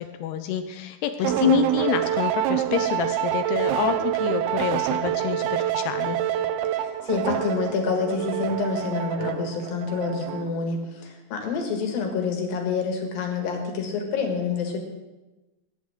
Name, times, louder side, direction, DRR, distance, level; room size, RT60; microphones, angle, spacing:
voice 1, 0.0-6.2, left 9 dB, 80° left, 8 dB, 2.4 m, -27 dB
voice 2, 1.2-1.6 6.8-14.8, left 5 dB, 60° left, 3 dB, 3.2 m, -28 dB
sound 1, 1.2-10.6, right 12 dB, 90° right, 2.2 m, -27 dB
20.5 x 9.6 x 3.7 m, 1.1 s
omnidirectional pair, 5.3 m